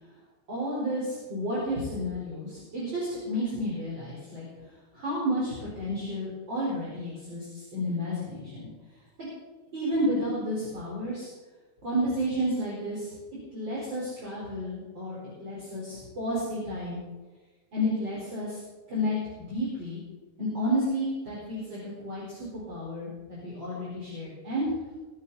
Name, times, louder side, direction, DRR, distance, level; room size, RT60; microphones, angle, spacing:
voice 1, 0.5-4.4 4.9-8.7 9.2-9.3 9.7-11.3 11.8-13.1 13.5-17.0 17.7-18.6 18.9-19.2 19.5-20.0 20.4-24.7, equal, 35° right, -7 dB, 5.4 m, -31 dB
23.0 x 11.0 x 4.2 m, 1.2 s
omnidirectional pair, 3.5 m